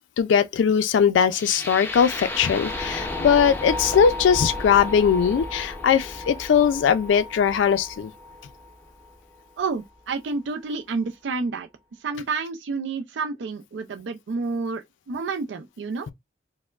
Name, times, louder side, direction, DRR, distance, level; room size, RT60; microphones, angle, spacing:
voice 1, 0.2-8.1, left 7 dB, 85° left, 0.3 m, -20 dB
sound 1, 1.3-9.3, left 2 dB, 10° left, 0.5 m, -33 dB
voice 2, 9.6-11.7 12.0-16.1, right 4 dB, 75° right, 0.4 m, -29 dB
4.3 x 2.0 x 2.3 m
head